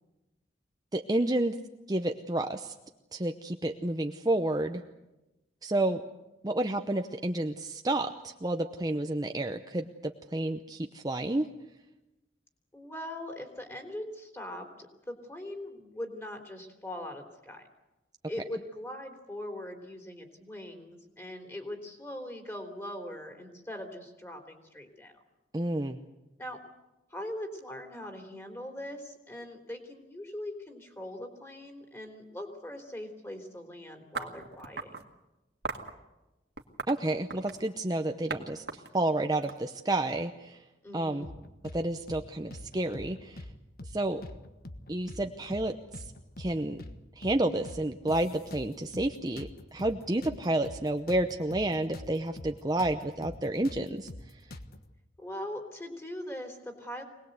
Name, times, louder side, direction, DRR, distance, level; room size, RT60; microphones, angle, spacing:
voice 1, 0.9-1.6 1.9-2.7 3.1-4.8 5.6-6.0 6.4-11.5 25.5-26.0 36.9-38.6 38.9-40.6 40.9-41.3 41.7-43.4 43.9-44.2 44.9-46.0 46.4-46.8 47.2-54.1, right 1 dB, 20° right, 5 dB, 0.8 m, -30 dB
voice 2, 12.7-17.7 18.3-25.1 26.4-26.6 27.1-34.9 40.8-41.3 55.2-57.0, left 1 dB, 15° left, 5 dB, 3.4 m, -41 dB
sound 1, 34.1-35.0 35.6-35.9 36.6-37.7 38.3-38.4 38.7-40.1, right 4 dB, 65° right, 2.0 m, -38 dB
sound 2, 41.2-41.8 42.1-42.2 42.5-43.5 43.8-44.0 44.2-45.2 45.5-45.7 45.9-47.0 47.2-47.4 47.7-49.1 49.4-52.1 52.4-52.5 52.8-54.8, left 1 dB, 55° left, 1.4 m, -44 dB
25.5 x 19.5 x 8.1 m, 1.0 s
head